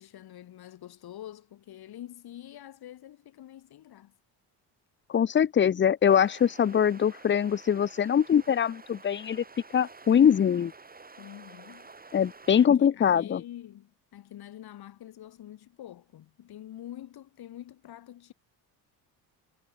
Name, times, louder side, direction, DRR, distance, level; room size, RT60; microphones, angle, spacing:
voice 1, 0.0-4.1 11.2-11.9 12.6-18.3, left 12 dB, 65° left, 6.6 m, -46 dB
voice 2, 5.1-9.4 9.7-10.7 12.1-13.4, left 8 dB, 30° left, 0.6 m, -23 dB
sound 1, 6.0-12.7, right 3 dB, 20° right, 7.0 m, -50 dB
cardioid pair, 100°, 41 cm